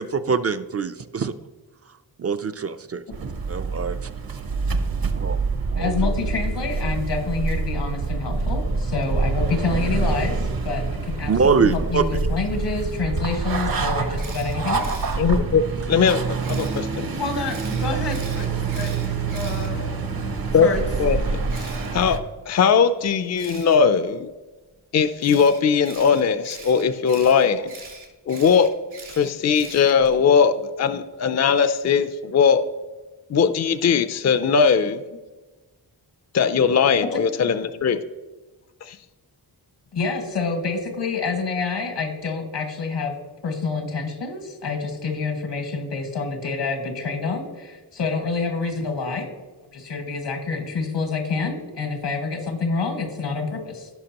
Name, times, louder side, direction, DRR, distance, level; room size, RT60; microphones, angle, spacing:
voice 1, 0.0-1.3 2.2-3.0 3.5-4.1 5.2-5.4 5.7-5.9 11.3-12.0 15.9-16.0, right 5 dB, 40° right, 10 dB, 0.4 m, -23 dB
sound 1, 3.1-22.2, right 4 dB, 60° right, 0.9 m, -26 dB
voice 2, 5.8-14.9 17.2-18.9 19.3-20.0 20.6-20.9 37.1-37.5 39.9-43.1 43.4-49.3 49.7-53.9, left 4 dB, 90° left, 4 dB, 1.8 m, -28 dB
Camera, 14.2-15.1 16.4-16.8 17.5-20.2 21.5-21.9 23.4-23.8 25.2-30.2, right 4 dB, 75° right, 3.2 m, -42 dB
voice 3, 15.2-15.6 15.9-16.2 16.5-17.1 20.5-20.7 21.0-21.4 21.9-22.2 22.5-24.3 24.9-27.7 28.3-28.7 29.2-32.6 33.3-35.0 36.3-38.0 38.8-39.0, left 6 dB, 40° left, 11 dB, 0.4 m, -19 dB
16.0 x 5.9 x 2.9 m, 1.2 s
wide cardioid pair, 150°, 41 cm